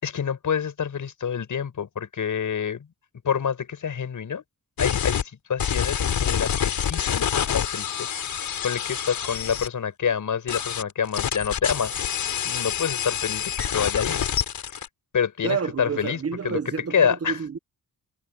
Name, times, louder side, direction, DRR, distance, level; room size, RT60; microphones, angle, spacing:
voice 1, 0.0-2.9 3.2-4.4 4.8-11.9 12.4-14.3 14.6-14.9 15.1-16.2 16.4-16.6 16.9-17.4, left 7 dB, 60° left, 6.5 m, -27 dB
sound 1, 4.8-5.2 5.6-9.7 10.5-14.9, left 9 dB, 75° left, 4.3 m, -27 dB
voice 2, 15.4-17.6, right 6 dB, 40° right, 1.4 m, -29 dB
cardioid pair, 115°, 36 cm